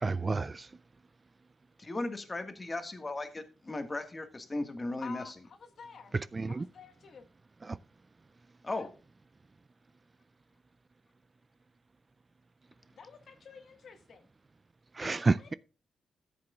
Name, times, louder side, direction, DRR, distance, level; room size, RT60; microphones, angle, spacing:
voice 1, 0.0-0.7 6.1-6.7 7.6-7.8 14.9-15.5, right 3 dB, 30° right, 0.4 m, -30 dB
voice 2, 1.8-5.3 8.6-8.9, left 2 dB, 25° left, 1.6 m, -36 dB
voice 3, 5.0-6.1 6.5-7.3 8.7-8.9 13.0-14.3 15.0-15.6, left 5 dB, 60° left, 1.6 m, -50 dB
13.5 x 7.7 x 2.4 m
cardioid pair, 100°, 0 cm